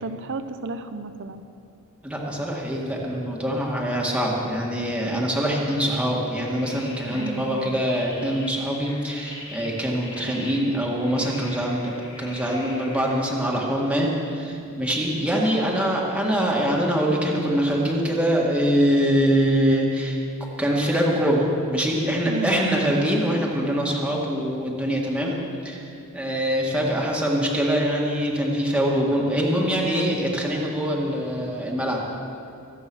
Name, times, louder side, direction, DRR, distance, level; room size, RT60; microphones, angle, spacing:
voice 1, 0.0-1.4 7.1-7.8 15.5-15.8 22.2-22.9, right 3 dB, 55° right, 9 dB, 0.7 m, -33 dB
voice 2, 2.0-20.2 20.6-25.9 26.1-32.0, equal, 5° right, -3 dB, 1.9 m, -24 dB
sound 1, 6.4-13.2, left 2 dB, 25° left, 3.5 m, -42 dB
24.5 x 8.5 x 6.2 m, 2.7 s
head